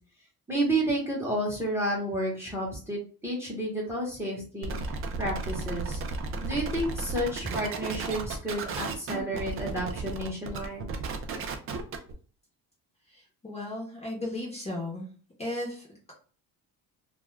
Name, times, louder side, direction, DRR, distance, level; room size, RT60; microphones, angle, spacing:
voice 1, 0.5-4.8 5.2-6.0 6.4-10.9, right 1 dB, 5° right, -4 dB, 0.9 m, -31 dB
sound 1, 4.6-12.1, right 4 dB, 35° right, 0.4 m, -34 dB
voice 2, 13.1-15.1 15.4-16.1, left 1 dB, 15° left, -3 dB, 0.9 m, -35 dB
2.3 x 2.3 x 3.1 m, 0.41 s
cardioid pair, 145°, 37 cm